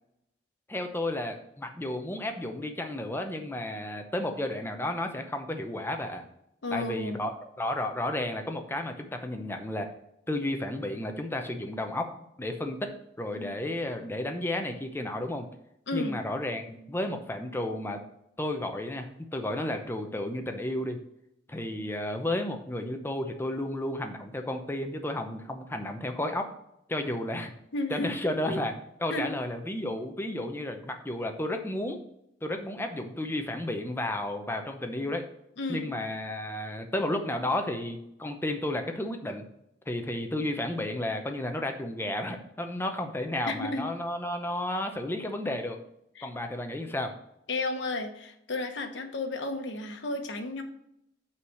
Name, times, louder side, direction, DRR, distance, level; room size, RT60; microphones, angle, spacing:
voice 1, 0.7-6.2 6.7-7.3 7.6-9.9 10.3-12.1 12.4-12.9 13.2-15.5 15.9-18.0 18.4-21.0 21.5-26.5 26.9-27.5 27.9-28.7 29.0-32.0 32.4-35.2 35.7-39.5 39.9-45.8 46.2-47.1, left 1 dB, 10° left, 5 dB, 0.7 m, -32 dB
voice 2, 6.6-7.3 13.4-13.6 15.9-16.2 27.7-28.1 28.5-28.6 29.1-29.3 35.6-35.9 43.5-43.9 46.2-46.3 47.5-50.6, left 2 dB, 75° left, 5 dB, 1.1 m, -33 dB
5.8 x 4.8 x 6.3 m, 0.78 s
head